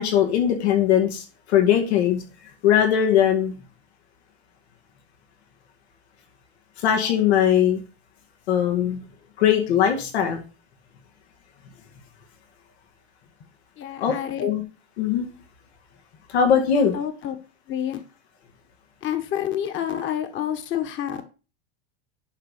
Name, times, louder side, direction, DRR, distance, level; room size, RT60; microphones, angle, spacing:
voice 1, 0.0-2.2 2.6-3.5 6.8-7.8 8.5-9.0 9.4-10.4 14.0-14.1 14.4-14.6 15.0-15.3 16.3-16.9, left 9 dB, 90° left, 3 dB, 2.3 m, -20 dB
voice 2, 13.8-14.5 16.7-17.3 17.7-18.0 19.0-21.2, left 10 dB, 40° left, 8 dB, 1.4 m, -28 dB
11.5 x 3.8 x 6.6 m, 0.33 s
supercardioid pair, 125°, 32 cm